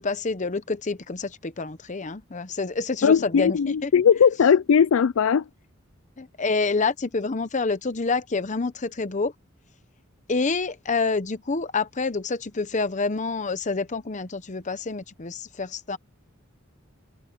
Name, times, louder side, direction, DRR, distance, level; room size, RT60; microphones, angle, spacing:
voice 1, 0.0-3.9 6.2-9.3 10.3-16.0, left 4 dB, 35° left, 0.8 m, -27 dB
voice 2, 3.0-5.4, left 7 dB, 70° left, 0.4 m, -19 dB
head